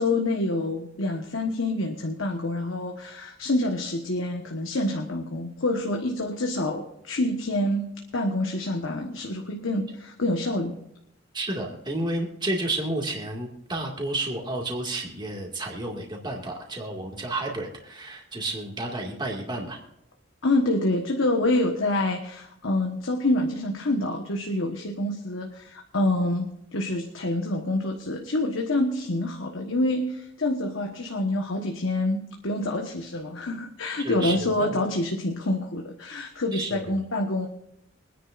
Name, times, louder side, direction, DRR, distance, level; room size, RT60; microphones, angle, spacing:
voice 1, 0.0-10.8 20.4-37.5, left 2 dB, 75° left, 2 dB, 1.3 m, -27 dB
voice 2, 11.3-19.8 34.0-34.8 36.5-37.0, right 2 dB, 20° right, -1 dB, 2.1 m, -31 dB
24.5 x 10.0 x 2.6 m, 0.79 s
head